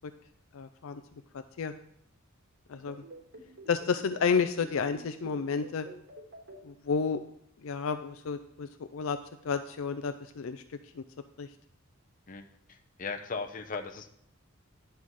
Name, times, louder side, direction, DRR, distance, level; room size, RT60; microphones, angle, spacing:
voice 1, 0.5-1.0 1.3-1.7 2.7-3.0 3.7-5.9 6.6-7.2 7.6-9.2 9.4-11.0 11.4-11.5, left 5 dB, 70° left, 9 dB, 0.4 m, -31 dB
sound 1, 2.9-6.6, right 2 dB, 65° right, 3.7 m, -47 dB
voice 2, 12.3-14.1, left 4 dB, 40° left, 5 dB, 0.8 m, -38 dB
10.5 x 5.7 x 4.7 m, 0.69 s
head